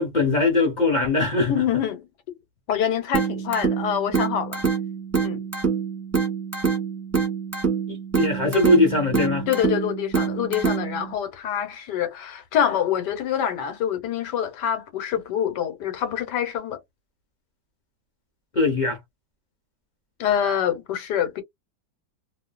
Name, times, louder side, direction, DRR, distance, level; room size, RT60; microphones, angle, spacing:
voice 1, 0.0-1.6 7.9-9.5 18.5-19.0, left 2 dB, 45° left, 0.6 m, -21 dB
voice 2, 1.5-2.4 2.7-4.6 5.2-5.4 9.5-16.8 20.2-21.4, left 9 dB, 75° left, 1.5 m, -26 dB
sound 1, 3.1-11.1, right 6 dB, 10° right, 1.1 m, -26 dB
2.9 x 2.5 x 2.2 m
omnidirectional pair, 1.9 m